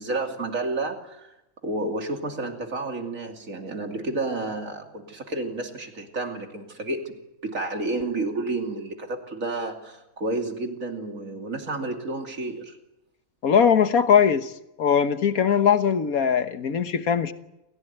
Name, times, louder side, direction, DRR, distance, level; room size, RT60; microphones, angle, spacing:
voice 1, 0.0-1.3 1.6-12.8, right 2 dB, 65° right, 3.2 m, -31 dB
voice 2, 13.4-14.5 14.8-17.3, left 7 dB, 80° left, 1.7 m, -20 dB
28.5 x 16.0 x 9.3 m
omnidirectional pair, 1.5 m